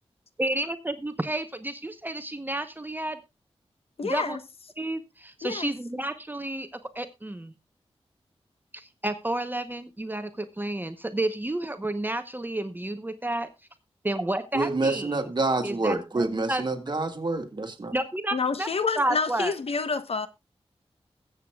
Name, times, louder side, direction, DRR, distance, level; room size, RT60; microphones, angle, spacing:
voice 1, 0.4-3.2 4.0-4.4 4.8-6.7 6.9-7.5 8.7-13.5 14.0-15.3 15.6-16.6 17.9-18.7 19.0-19.5, right 1 dB, 20° right, 0.9 m, -31 dB
voice 2, 4.0-4.4 5.4-5.7 18.3-20.3, left 4 dB, 70° left, 1.0 m, -28 dB
voice 3, 14.5-17.9, right 3 dB, 45° right, 1.9 m, -27 dB
21.5 x 7.9 x 2.3 m
wide cardioid pair, 90°, 11 cm